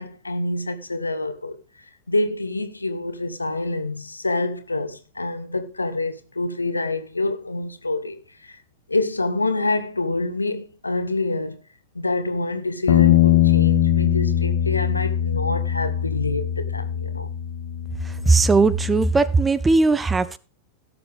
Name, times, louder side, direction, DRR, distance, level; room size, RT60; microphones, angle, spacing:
voice 1, 0.0-1.6 2.1-8.6 8.9-11.6 11.9-17.3, left 2 dB, 80° left, 1.1 m, -26 dB
Bass guitar, 12.9-19.1, left 11 dB, 55° left, 1.3 m, -21 dB
voice 2, 18.3-20.4, right 3 dB, 15° right, 0.6 m, -18 dB
17.0 x 6.8 x 3.5 m
figure-of-eight pair, 90°, 0 cm